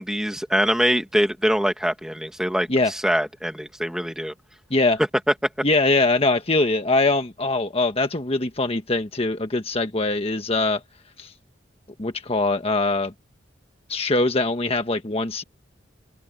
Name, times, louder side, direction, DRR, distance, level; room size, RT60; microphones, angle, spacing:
voice 1, 0.0-4.3, equal, 5° right, 2.3 m, -24 dB
voice 2, 5.6-10.8 11.2-11.3 12.0-13.1 13.9-15.4, left 2 dB, 30° left, 1.4 m, -22 dB
head